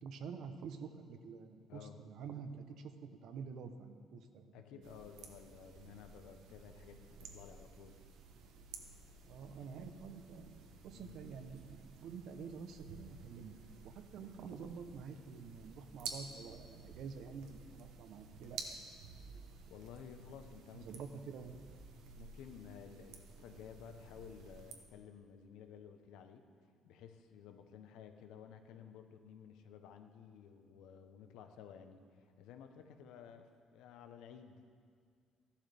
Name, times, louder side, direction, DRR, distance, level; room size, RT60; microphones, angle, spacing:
voice 1, 0.0-4.8 9.3-13.6 13.8-18.9 20.7-21.6, right 5 dB, 60° right, 8 dB, 0.8 m, -48 dB
voice 2, 4.5-8.0 10.9-11.2 19.7-21.0 22.2-26.4 26.8-34.6, left 8 dB, 85° left, 7 dB, 0.8 m, -54 dB
sound 1, 4.8-24.7, right 5 dB, 80° right, 1.1 m, -53 dB
14.0 x 11.5 x 3.4 m, 2.1 s
cardioid pair, 165°, 0 cm